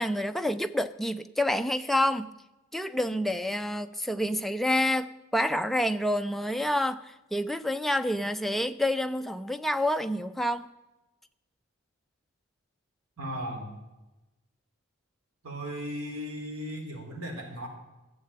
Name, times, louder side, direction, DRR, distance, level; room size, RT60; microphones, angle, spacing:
voice 1, 0.0-2.3 2.7-10.7, left 1 dB, ahead, 0.4 m, -28 dB
voice 2, 13.2-13.7 15.4-17.7, equal, 85° right, 3.7 m, -36 dB
13.0 x 7.5 x 8.5 m
head